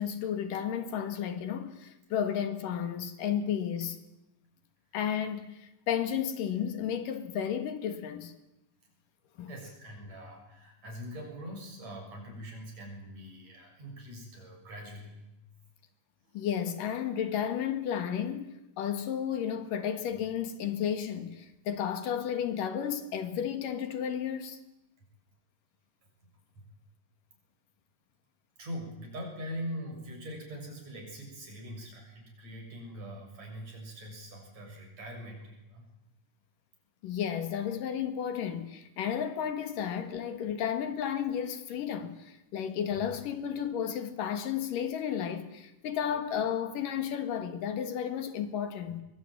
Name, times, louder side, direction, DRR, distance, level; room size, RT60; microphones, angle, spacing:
voice 1, 0.0-4.0 4.9-8.3 9.4-9.5 16.3-24.6 37.0-49.0, left 8 dB, 80° left, 3.5 m, -33 dB
voice 2, 9.5-15.1 26.6-26.7 28.6-35.8, equal, 55° right, 8.2 m, -42 dB
23.5 x 22.5 x 9.2 m
omnidirectional pair, 3.8 m